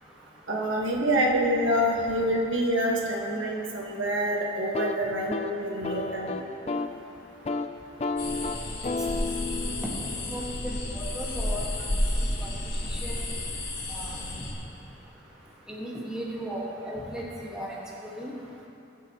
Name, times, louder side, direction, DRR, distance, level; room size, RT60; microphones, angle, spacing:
voice 1, 0.5-6.4, equal, 85° right, -2 dB, 1.5 m, -26 dB
sound 1, 4.6-7.0 7.3-7.7 8.0-11.9, left 3 dB, 30° left, 0.4 m, -33 dB
sound 2, 8.2-14.5, left 1 dB, 55° left, 1.7 m, -31 dB
voice 2, 10.3-11.6 12.4-12.5 12.9-13.2 13.9-14.4 15.7-17.8 18.0-18.3, equal, 5° right, -5 dB, 1.5 m, -36 dB
20.5 x 7.2 x 3.0 m, 2.8 s
head